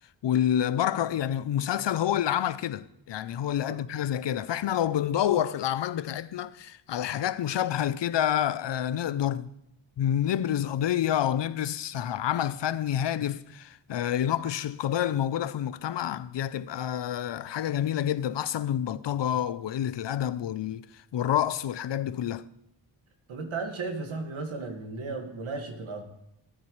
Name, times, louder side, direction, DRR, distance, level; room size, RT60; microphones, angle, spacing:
voice 1, 0.2-9.5 10.0-22.4, left 10 dB, 65° left, 0.6 m, -28 dB
voice 2, 23.3-26.0, right 3 dB, 90° right, 2.0 m, -35 dB
17.5 x 9.0 x 3.2 m
cardioid pair, 70°, 46 cm